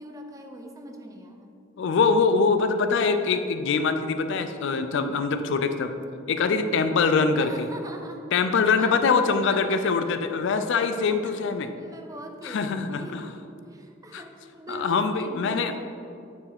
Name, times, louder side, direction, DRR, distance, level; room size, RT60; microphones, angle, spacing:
voice 1, 0.0-1.5 6.4-6.6 7.4-8.3 8.8-9.0 9.5-10.1 11.1-11.4 11.8-13.4 13.7-15.8, right 1 dB, 20° right, 3 dB, 0.6 m, -42 dB
voice 2, 1.8-5.9 6.3-7.7 8.3-11.7 12.4-13.3 14.1-14.2 14.7-15.8, left 4 dB, 65° left, 9 dB, 0.4 m, -23 dB
9.0 x 4.6 x 3.5 m, 2.6 s
head